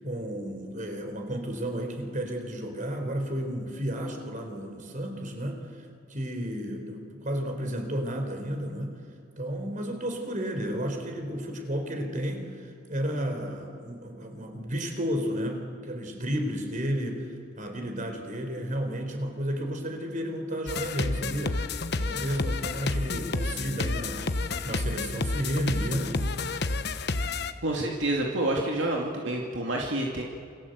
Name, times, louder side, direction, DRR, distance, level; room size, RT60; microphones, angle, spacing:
voice 1, 0.0-5.6 6.1-8.9 9.4-17.3 17.6-21.6 22.0-26.3, equal, 40° right, 5 dB, 4.4 m, -32 dB
sound 1, 20.7-27.5, left 3 dB, 60° left, 1.1 m, -30 dB
voice 2, 27.6-30.2, right 1 dB, 70° right, -1 dB, 2.5 m, -28 dB
28.5 x 24.0 x 8.1 m, 2.5 s
head